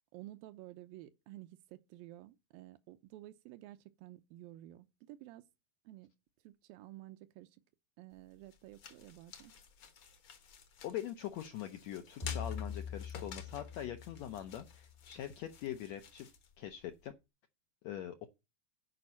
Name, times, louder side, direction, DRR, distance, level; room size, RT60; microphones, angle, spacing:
voice 1, 0.1-5.4 5.9-6.1 6.4-7.6 8.0-9.5, right 16 dB, 85° right, 2.6 m, -52 dB
sound 1, 8.1-17.1, left 6 dB, 55° left, 1.3 m, -53 dB
voice 2, 10.8-16.3 16.6-17.1 17.8-18.3, left 11 dB, 75° left, 1.6 m, -43 dB
sound 2, 12.2-15.0, left 7 dB, 20° left, 0.8 m, -43 dB
9.4 x 5.4 x 7.1 m
omnidirectional pair, 4.1 m